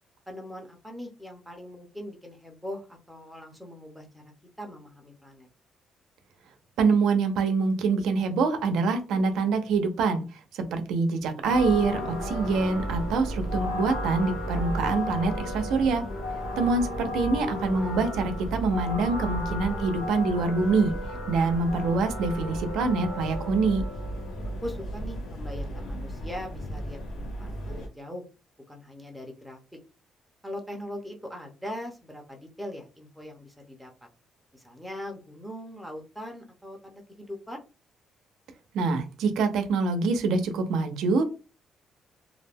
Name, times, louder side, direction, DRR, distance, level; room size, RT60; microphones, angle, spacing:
voice 1, 0.3-4.3 4.6-5.5 24.6-28.2 28.7-29.6 30.4-33.9 34.5-37.6, left 1 dB, ahead, 1 dB, 0.5 m, -40 dB
voice 2, 6.8-10.2 10.5-16.0 16.6-20.9 21.3-23.8 38.7-41.3, right 4 dB, 85° right, 7 dB, 0.5 m, -25 dB
sound 1, 11.4-27.9, equal, 80° left, 1.2 m, -33 dB
2.3 x 2.1 x 3.3 m, 0.32 s
cardioid pair, 170°, 0 cm